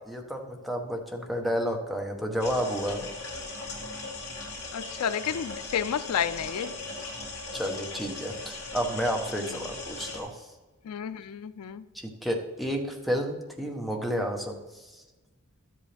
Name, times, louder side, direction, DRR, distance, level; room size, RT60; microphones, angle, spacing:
voice 1, 0.1-3.1 7.5-10.4 11.9-14.9, equal, ahead, 1 dB, 1.0 m, -31 dB
sound 1, 2.4-10.2, left 3 dB, 60° left, 2.7 m, -38 dB
voice 2, 4.7-6.7 9.4-9.6 10.8-11.8, left 8 dB, 85° left, 15 dB, 0.4 m, -31 dB
12.5 x 7.7 x 3.4 m, 1.2 s
head